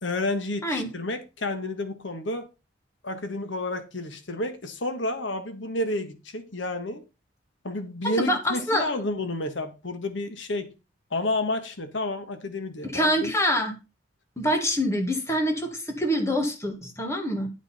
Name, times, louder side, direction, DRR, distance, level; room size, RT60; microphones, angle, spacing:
voice 1, 0.0-2.5 3.0-7.0 7.6-10.7 11.1-13.3, left 2 dB, 75° left, 1.5 m, -30 dB
voice 2, 0.6-1.0 8.0-8.9 12.8-13.7 14.4-17.5, equal, 15° left, 1.8 m, -25 dB
11.0 x 6.4 x 4.3 m
head